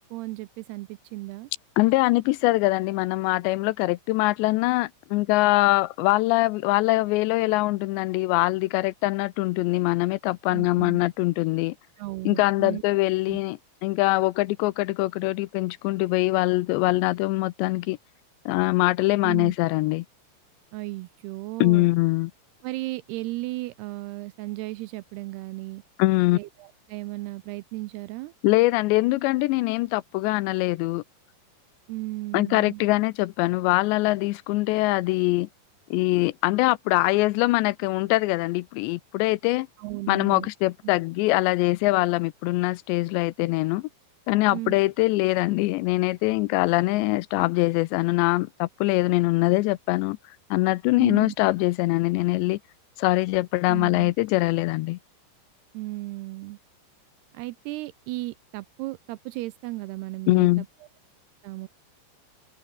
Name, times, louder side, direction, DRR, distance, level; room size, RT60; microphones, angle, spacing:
voice 1, 0.0-1.5 10.5-11.0 12.0-12.8 13.3-13.4 19.2-19.5 20.7-21.9 22.6-25.8 26.3-28.3 31.9-32.8 39.8-40.5 44.5-44.8 51.0-51.4 53.7-54.1 55.7-56.6 57.3-60.7 61.4-61.7, right 20 dB, 80° right, 2.4 m, -35 dB
voice 2, 1.8-11.8 12.3-18.0 18.5-20.1 21.6-22.3 26.0-26.4 28.4-31.0 32.3-35.5 35.9-39.7 40.1-43.9 44.3-50.2 50.5-52.6 53.0-55.0 60.3-60.7, left 20 dB, 85° left, 2.9 m, -23 dB
open air
omnidirectional pair, 5.1 m